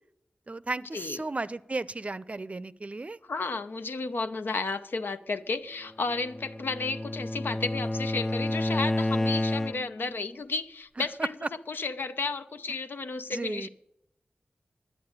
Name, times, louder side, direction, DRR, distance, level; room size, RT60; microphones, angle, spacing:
voice 1, 0.5-3.2 11.0-11.1 13.3-13.7, right 2 dB, 40° right, 16 dB, 0.5 m, -34 dB
voice 2, 3.2-11.4 11.7-13.7, left 3 dB, 80° left, 10 dB, 0.7 m, -33 dB
Bowed string instrument, 6.1-10.1, left 1 dB, 15° left, 0.4 m, -30 dB
10.5 x 10.0 x 9.5 m, 0.82 s
wide cardioid pair, 70°, 4 cm